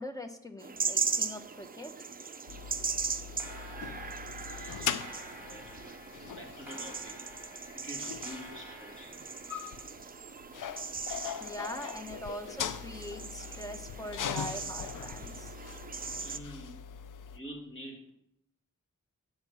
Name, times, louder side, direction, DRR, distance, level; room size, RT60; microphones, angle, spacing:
voice 1, 0.0-2.1 11.4-15.5, equal, 10° left, 7 dB, 0.8 m, -42 dB
sound 1, 0.6-16.4, right 5 dB, 30° right, 0.5 m, -39 dB
sound 2, 0.7-2.3 3.2-10.0, equal, 5° right, 2.6 m, -52 dB
sound 3, 2.5-17.4, left 8 dB, 80° left, 0.5 m, -41 dB
voice 2, 3.8-5.1 5.4-9.3 10.9-11.5 11.9-12.2 16.1-16.8 17.3-18.1, equal, 40° left, -1 dB, 2.5 m, -48 dB
8.9 x 4.4 x 7.1 m, 0.81 s
wide cardioid pair, 115°, 31 cm